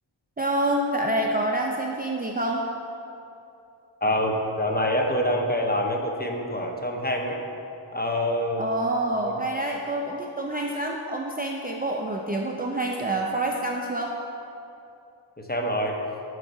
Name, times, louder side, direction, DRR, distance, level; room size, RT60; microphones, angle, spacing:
voice 1, 0.4-2.7 8.6-14.1, right 1 dB, 20° right, -1 dB, 0.5 m, -27 dB
voice 2, 4.0-7.4 7.9-8.6 9.2-9.3 15.4-16.0, left 1 dB, 20° left, 1 dB, 0.8 m, -26 dB
13.0 x 4.7 x 2.7 m, 2.7 s
wide cardioid pair, 65°, 49 cm